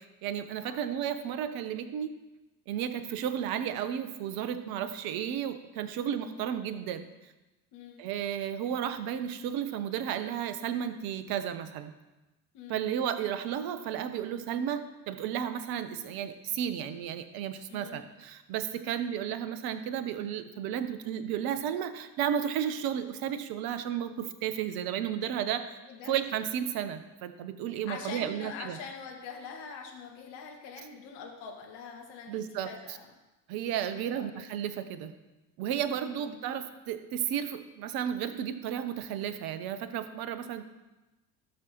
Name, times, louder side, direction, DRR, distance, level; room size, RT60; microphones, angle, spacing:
voice 1, 0.0-2.1 2.7-7.1 8.0-11.9 12.7-25.8 26.1-28.8 32.3-32.7 33.5-35.1 35.6-40.6, right 9 dB, 45° right, 11 dB, 1.0 m, -33 dB
voice 2, 0.6-1.0 6.2-6.5 7.7-8.0 12.5-12.9 17.7-18.0 18.8-18.9 25.9-26.1 27.7-33.1 33.8-34.4 36.0-36.5, left 5 dB, 55° left, 1 dB, 1.9 m, -44 dB
15.5 x 6.3 x 3.0 m, 1.1 s
figure-of-eight pair, 65°, 49 cm